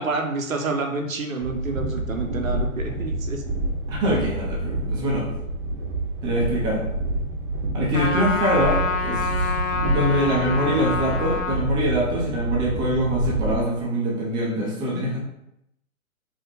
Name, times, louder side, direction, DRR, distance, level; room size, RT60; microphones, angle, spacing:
voice 1, 0.0-3.4, right 3 dB, 70° right, 4 dB, 0.9 m, -28 dB
Train, 1.4-13.6, right 1 dB, 35° right, 1.0 m, -28 dB
voice 2, 3.9-5.3 6.2-6.8 7.7-9.5 9.7-15.2, equal, 10° right, -4 dB, 0.7 m, -24 dB
Trumpet, 7.9-11.6, left 4 dB, 60° left, 0.8 m, -27 dB
4.6 x 3.1 x 3.4 m, 0.80 s
figure-of-eight pair, 125°, 42 cm